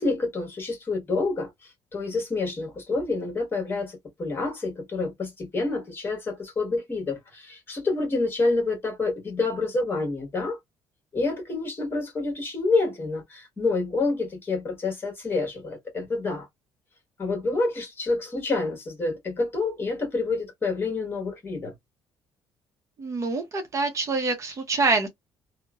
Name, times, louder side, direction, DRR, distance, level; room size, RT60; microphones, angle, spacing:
voice 1, 0.0-10.6 11.1-16.5 17.2-21.7, left 3 dB, 25° left, 1.3 m, -28 dB
voice 2, 23.0-25.1, right 3 dB, 35° right, 0.7 m, -25 dB
2.9 x 2.1 x 2.3 m
cardioid pair, 140°, 9 cm